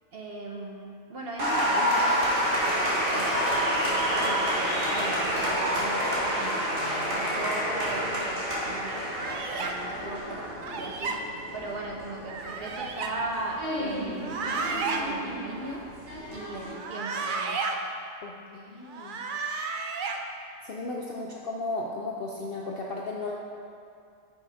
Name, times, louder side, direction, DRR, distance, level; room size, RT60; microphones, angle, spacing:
voice 1, 0.1-2.2 2.6-6.6 7.0-10.4 10.8-11.2 11.5-17.6, right 2 dB, 55° right, -1 dB, 0.7 m, -38 dB
Applause, 1.4-16.7, equal, 40° right, 1.6 m, -29 dB
sound 1, 9.1-9.7 10.6-11.2 12.3-13.1 14.1-15.0 16.7-17.7 18.9-20.2, right 4 dB, 90° right, 0.4 m, -32 dB
voice 2, 18.2-19.2 20.6-23.3, left 2 dB, 65° left, -2 dB, 0.6 m, -35 dB
6.1 x 5.5 x 4.8 m, 2.4 s
omnidirectional pair, 1.5 m